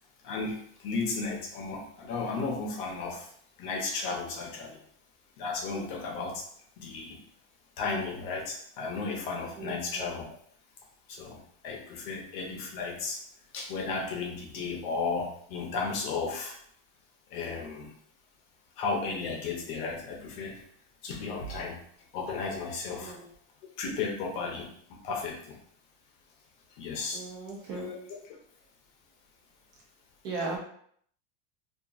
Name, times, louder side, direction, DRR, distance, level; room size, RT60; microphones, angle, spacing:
voice 1, 0.2-3.3 3.6-4.8 5.4-6.4 6.8-7.2 7.8-10.2 11.1-11.4 11.6-13.2 13.5-16.6 17.3-17.9 18.8-20.6 21.0-21.8 22.1-23.1 23.8-24.7 25.0-25.6 26.8-27.2 27.7-28.3, left 4 dB, 50° left, -1 dB, 0.7 m, -34 dB
voice 2, 27.1-27.9 30.2-30.6, right 3 dB, 45° right, -2 dB, 0.8 m, -36 dB
2.8 x 2.4 x 2.4 m, 0.62 s
supercardioid pair, 175°, 38 cm